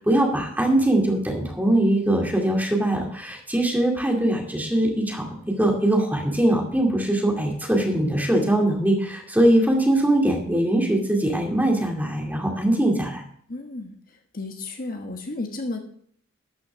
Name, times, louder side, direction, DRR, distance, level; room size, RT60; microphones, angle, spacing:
voice 1, 0.0-5.3 5.6-13.2, right 1 dB, 10° right, 0 dB, 2.4 m, -21 dB
voice 2, 13.5-15.8, left 2 dB, 45° left, 3 dB, 1.2 m, -33 dB
13.0 x 6.1 x 6.2 m, 0.62 s
head